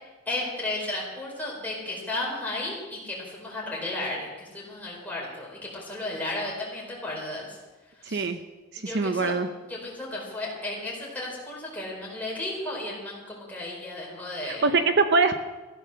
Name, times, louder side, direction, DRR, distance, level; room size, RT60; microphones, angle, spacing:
voice 1, 0.3-7.6 8.0-8.3 8.8-9.3 9.6-14.7, left 2 dB, 10° left, -4 dB, 4.6 m, -34 dB
voice 2, 8.1-8.4 8.7-9.5 14.4-15.4, right 4 dB, 60° right, 8 dB, 0.8 m, -23 dB
15.0 x 9.6 x 6.6 m, 1.2 s
head